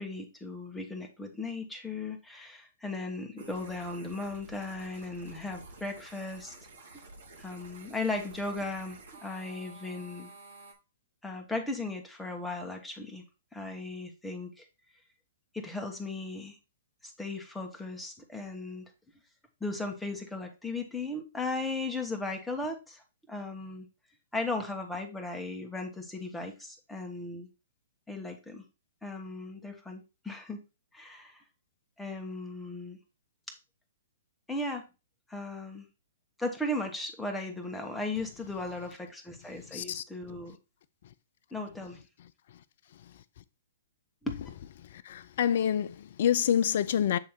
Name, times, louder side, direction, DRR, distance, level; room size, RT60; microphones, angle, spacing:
voice 1, 0.0-6.6 7.4-10.3 11.2-13.2 13.5-14.6 15.5-16.6 17.0-18.8 19.6-23.9 24.3-27.5 28.1-28.6 29.0-30.6 30.9-31.4 32.0-33.0 34.5-34.8 35.3-35.9 36.4-40.6 41.5-42.0 44.2-44.3, left 2 dB, 5° left, 1.4 m, -37 dB
sound 1, 3.4-10.7, right 2 dB, 70° right, 2.2 m, -50 dB
voice 2, 39.7-40.0 45.1-47.2, left 9 dB, 60° left, 0.5 m, -27 dB
7.7 x 3.4 x 4.5 m
hypercardioid pair, 125°, 0 cm